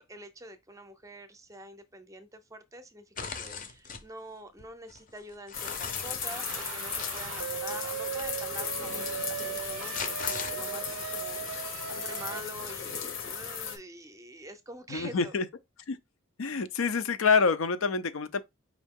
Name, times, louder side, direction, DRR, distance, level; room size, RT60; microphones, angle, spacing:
voice 1, 0.0-15.4, right 1 dB, 15° right, 0.5 m, -46 dB
sound 1, 3.2-4.1 4.6-7.3 8.2-8.4 9.6-11.0, left 5 dB, 40° left, 0.6 m, -40 dB
Rain Rain Drips Thunder, 5.5-13.8, left 7 dB, 65° left, 1.0 m, -36 dB
sound 2, 6.2-12.4, right 9 dB, 90° right, 0.4 m, -38 dB
voice 2, 14.9-15.5 15.9-16.0 16.4-18.4, left 5 dB, 85° left, 0.6 m, -26 dB
5.0 x 2.7 x 3.6 m
head